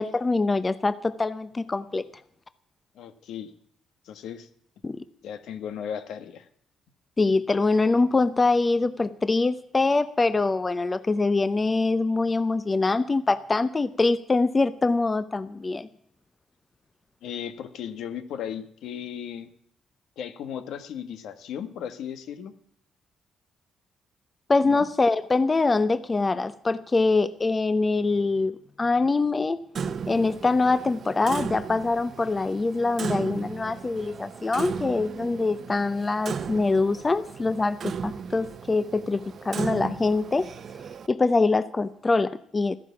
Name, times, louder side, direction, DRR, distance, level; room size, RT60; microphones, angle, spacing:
voice 1, 0.0-2.0 4.8-5.0 7.2-15.9 24.5-29.6 30.1-40.5 41.1-42.8, left 3 dB, 25° left, 14 dB, 0.7 m, -24 dB
voice 2, 2.9-3.5 4.0-4.5 5.2-6.5 17.2-19.5 20.2-22.5 24.6-24.9, left 8 dB, 80° left, 10 dB, 1.5 m, -36 dB
Clock, 29.8-41.1, right 6 dB, 55° right, 0.9 m, -36 dB
14.0 x 11.0 x 7.1 m, 0.68 s
cardioid pair, 90°, 0 cm